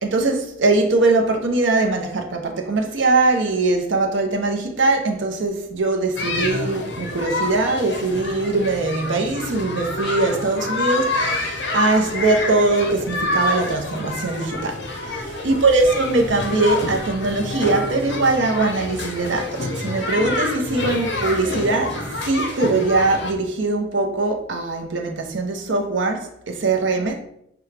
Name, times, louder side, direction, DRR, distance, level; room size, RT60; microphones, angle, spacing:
voice 1, 0.0-15.2 15.4-27.2, right 3 dB, 85° right, 0.7 m, -21 dB
sound 1, 6.1-23.3, left 2 dB, 65° left, 0.6 m, -27 dB
5.9 x 2.3 x 3.2 m
head